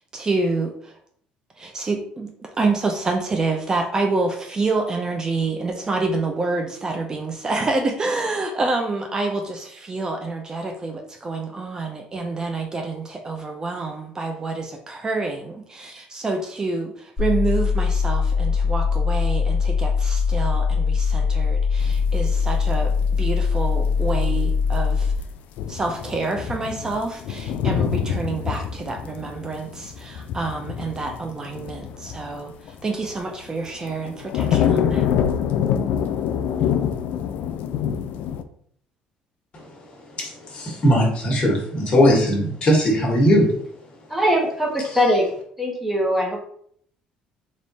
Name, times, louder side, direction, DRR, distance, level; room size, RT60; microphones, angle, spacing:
voice 1, 0.1-0.9 1.6-25.1 25.7-32.5 32.8-35.1, right 3 dB, 25° right, 3 dB, 0.5 m, -27 dB
sound 1, 17.2-25.2, left 5 dB, 15° left, 1.1 m, -21 dB
sound 2, 21.8-23.3 23.7-24.3 24.6-24.8 25.1-25.2 25.6-33.2 33.7-38.4, left 8 dB, 70° left, 0.3 m, -26 dB
voice 2, 40.2-43.5, equal, 40° left, -1 dB, 1.4 m, -19 dB
voice 3, 44.1-45.3 45.6-46.4, equal, 5° right, 0 dB, 0.9 m, -21 dB
3.5 x 2.5 x 4.0 m, 0.63 s
cardioid pair, 125°, 3 cm